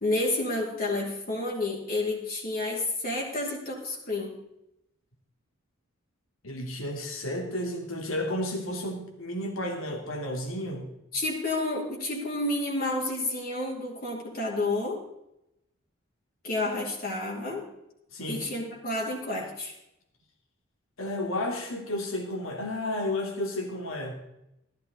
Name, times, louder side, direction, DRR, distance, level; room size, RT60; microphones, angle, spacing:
voice 1, 0.0-4.3 11.1-15.0 16.4-17.7 18.3-19.7, left 2 dB, 45° left, -2 dB, 2.6 m, -30 dB
voice 2, 6.4-10.9 18.1-18.5 21.0-24.1, left 1 dB, 80° left, 2 dB, 2.8 m, -32 dB
14.5 x 12.0 x 4.0 m, 0.85 s
head